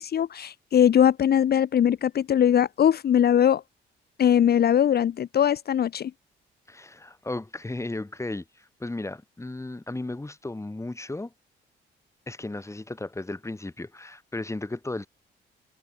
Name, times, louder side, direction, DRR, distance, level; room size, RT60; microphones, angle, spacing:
voice 1, 0.0-3.6 4.2-6.1, left 9 dB, 55° left, 1.0 m, -21 dB
voice 2, 6.7-11.3 12.3-15.1, left 2 dB, 15° left, 5.6 m, -35 dB
cardioid pair, 90°, 20 cm